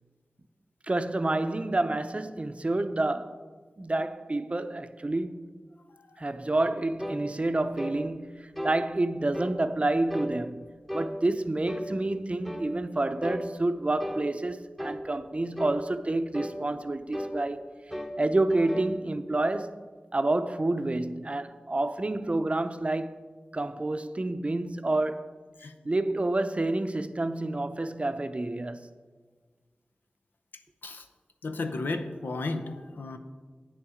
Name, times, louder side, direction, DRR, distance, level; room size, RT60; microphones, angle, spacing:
voice 1, 0.9-3.4 3.8-5.4 6.2-17.7 18.2-19.8 20.1-23.1 23.5-25.3 25.8-28.9, right 2 dB, 40° right, 0.5 m, -29 dB
voice 2, 5.9-6.3 25.6-25.7 30.8-31.0 31.4-33.2, left 3 dB, 90° left, 0.7 m, -34 dB
sound 1, 7.0-7.2 7.8-8.0 8.6-8.8 9.3-9.6 10.1-10.4 10.9-11.1 11.7-11.9 12.4-12.7 13.2-13.5 14.0-14.3 14.8-15.0 15.6-15.8 16.3-16.6 17.1-17.4 17.9-18.2 18.5-18.9, equal, 5° left, 0.9 m, -35 dB
8.7 x 7.1 x 5.0 m
cardioid pair, 40°, 3 cm